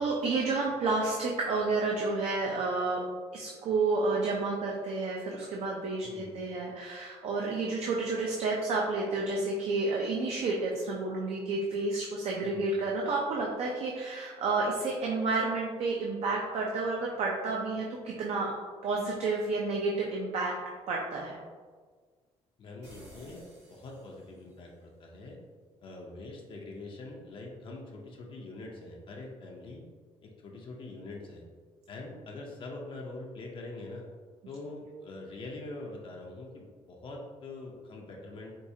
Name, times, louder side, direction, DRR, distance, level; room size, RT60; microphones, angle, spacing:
voice 1, 0.0-3.1 3.3-18.5 18.8-20.5 20.9-21.4, right 3 dB, 70° right, -2 dB, 0.5 m, -30 dB
voice 2, 6.0-6.4 12.4-12.6 22.6-25.4 25.8-29.8 30.2-31.4 31.9-34.1 34.5-38.5, left 2 dB, 50° left, -1 dB, 0.5 m, -44 dB
sound 1, 22.8-24.6, right 1 dB, 85° right, 1.3 m, -52 dB
4.5 x 2.4 x 2.7 m, 1.5 s
cardioid pair, 120°, 11 cm